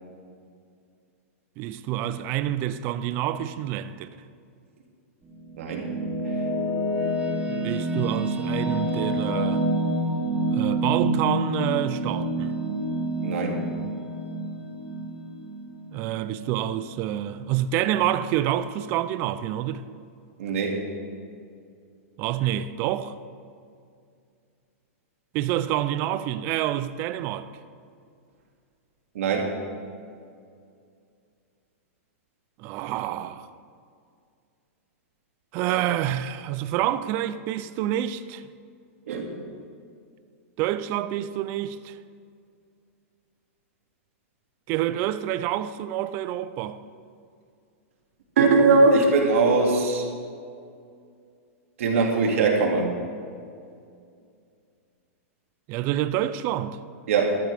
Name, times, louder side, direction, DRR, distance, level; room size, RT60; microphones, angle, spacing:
voice 1, 1.6-4.1 7.5-9.7 10.5-12.5 15.9-19.8 22.2-23.2 25.3-27.5 32.6-33.5 35.5-38.5 40.6-42.0 44.7-46.8 55.7-56.8, right 12 dB, 30° right, 0.4 m, -27 dB
sound 1, 5.2-16.5, right 1 dB, 10° right, 1.5 m, -28 dB
voice 2, 5.6-5.9 13.2-13.6 20.4-20.8 29.1-29.5 39.1-39.2 48.4-50.0 51.8-52.9 57.1-57.4, right 3 dB, 65° right, 2.3 m, -21 dB
13.0 x 13.0 x 3.5 m
supercardioid pair, 165°, 8 cm